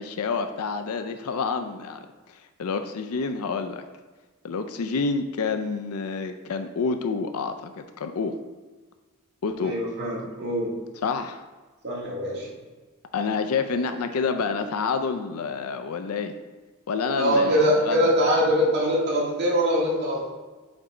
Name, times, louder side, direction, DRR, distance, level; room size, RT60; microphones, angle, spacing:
voice 1, 0.0-2.1 2.6-3.8 4.4-8.4 9.4-9.7 11.0-11.4 13.1-16.3 16.9-18.1, left 4 dB, 80° left, 8 dB, 0.4 m, -28 dB
voice 2, 9.6-10.8 11.8-12.5 17.2-20.3, equal, 50° right, -4 dB, 1.8 m, -23 dB
5.3 x 3.9 x 4.8 m, 1.3 s
head